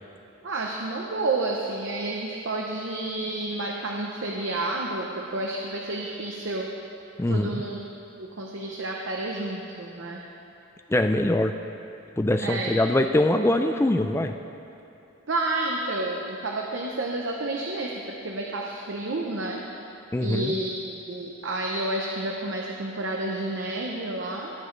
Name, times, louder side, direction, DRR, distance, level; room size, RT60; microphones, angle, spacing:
voice 1, 0.4-6.7 7.3-7.8 8.2-10.2 12.4-12.7 15.3-19.6 20.2-24.5, right 2 dB, 60° right, -1 dB, 0.7 m, -30 dB
voice 2, 7.2-7.6 10.9-11.5 12.2-14.4 20.1-20.5, left 1 dB, 10° left, 7 dB, 0.3 m, -23 dB
19.0 x 7.2 x 3.2 m, 2.9 s
head